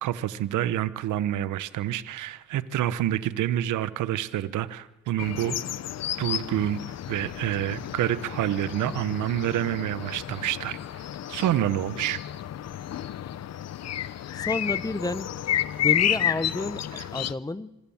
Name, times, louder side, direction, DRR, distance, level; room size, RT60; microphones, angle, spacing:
voice 1, 0.0-5.6 6.2-6.8 7.1-10.8 11.3-12.2, right 12 dB, 80° right, 1.1 m, -27 dB
sound 1, 5.2-17.3, left 11 dB, 60° left, 0.9 m, -31 dB
voice 2, 14.3-15.3 15.8-17.8, left 2 dB, 10° left, 0.9 m, -30 dB
26.0 x 19.5 x 7.2 m
cardioid pair, 90°, 30 cm